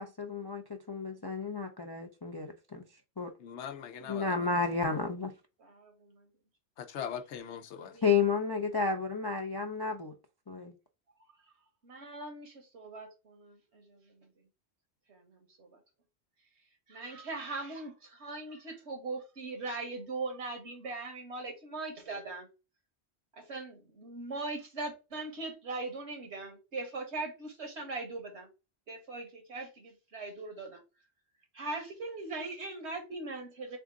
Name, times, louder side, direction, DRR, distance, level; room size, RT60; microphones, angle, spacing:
voice 1, 0.0-2.8 3.2-3.3 4.1-5.3 8.0-10.1 10.5-10.7, left 5 dB, 40° left, 0.3 m, -32 dB
voice 2, 3.4-4.4 6.8-7.9, left 8 dB, 85° left, 1.0 m, -40 dB
voice 3, 5.6-6.3 7.8-8.1 11.4-11.5 11.8-14.3 15.1-15.8 16.9-22.5 23.3-28.5 28.9-30.8 31.5-33.8, right 3 dB, 75° right, 1.5 m, -40 dB
3.6 x 3.5 x 3.6 m
omnidirectional pair, 1.1 m